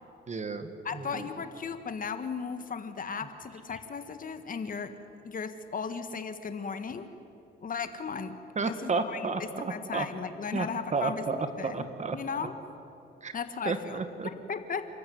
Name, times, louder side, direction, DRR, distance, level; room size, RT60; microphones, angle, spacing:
voice 1, 0.3-1.3 8.6-10.1 10.5-12.2 13.2-13.3 13.7-14.3, right 4 dB, 35° right, 9 dB, 1.8 m, -32 dB
voice 2, 0.8-5.0 5.2-7.1 7.6-11.2 11.6-11.9 12.1-12.5 13.3-14.0 14.5-14.9, left 6 dB, 45° left, 10 dB, 1.5 m, -36 dB
30.0 x 14.0 x 9.5 m, 2.8 s
cardioid pair, 90°, 20 cm